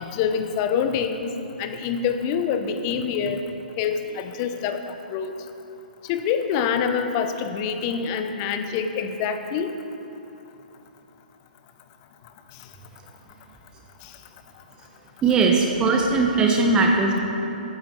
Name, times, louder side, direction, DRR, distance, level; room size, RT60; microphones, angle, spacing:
voice 1, 0.0-1.3 1.6-3.4 3.8-4.8 5.1-5.4 6.1-9.8 14.0-14.1, left 7 dB, 30° left, 8 dB, 0.8 m, -26 dB
voice 2, 15.2-17.2, right 3 dB, 15° right, 1 dB, 1.0 m, -19 dB
14.0 x 10.0 x 4.2 m, 2.9 s
figure-of-eight pair, 120°, 5 cm